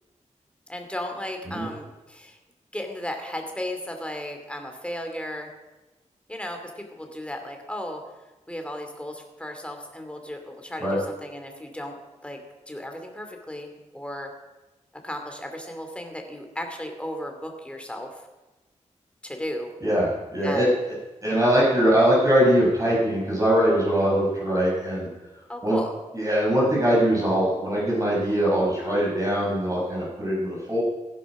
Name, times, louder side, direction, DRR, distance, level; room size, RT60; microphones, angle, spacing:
voice 1, 0.7-2.4 2.7-5.5 6.3-8.0 8.5-12.0 12.2-12.4 12.7-14.3 15.0-18.2 19.2-19.7 20.4-20.8 25.5-25.9, left 1 dB, 10° left, 4 dB, 2.6 m, -35 dB
voice 2, 19.8-20.7 21.2-25.1 25.6-25.8 26.1-30.8, equal, 25° right, -5 dB, 5.9 m, -22 dB
15.5 x 10.5 x 6.1 m, 1.1 s
wide cardioid pair, 95°, 13 cm